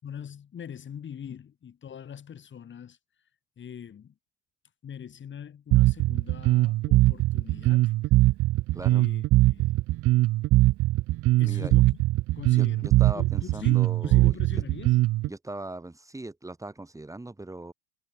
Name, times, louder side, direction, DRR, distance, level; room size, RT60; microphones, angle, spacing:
voice 1, 0.0-3.0 3.6-4.1 4.8-7.9 8.9-9.2 9.5-9.8 11.4-11.9 12.3-15.0, left 8 dB, 35° left, 6.3 m, -42 dB
Bass guitar, 5.7-15.3, right 18 dB, 40° right, 0.6 m, -21 dB
voice 2, 8.7-9.1 11.4-11.7 12.6-14.4 15.3-17.7, right 2 dB, 10° right, 5.4 m, -39 dB
supercardioid pair, 100°, 34 cm